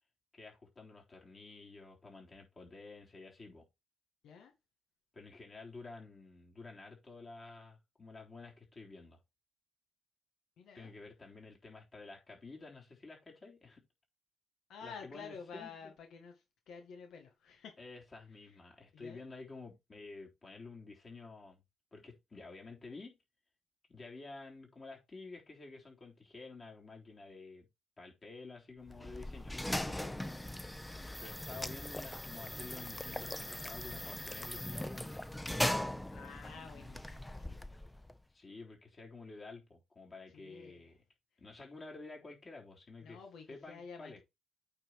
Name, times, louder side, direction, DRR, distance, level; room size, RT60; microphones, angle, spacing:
voice 1, 0.3-3.7 5.1-9.2 10.7-13.8 14.8-15.9 17.8-21.6 21.9-23.2 23.9-27.7 28.0-29.7 31.2-35.2 38.3-41.0 41.4-43.2 43.5-44.2, left 3 dB, 35° left, 3.7 m, -51 dB
voice 2, 10.6-10.9 14.7-17.8 18.4-18.6 18.9-19.2 29.9-30.6 36.1-37.8 40.3-40.9 43.0-44.2, left 5 dB, 75° left, 1.9 m, -51 dB
sound 1, 28.9-38.2, left 1 dB, 10° left, 0.8 m, -39 dB
8.8 x 4.3 x 4.8 m
cardioid pair, 90°, 0 cm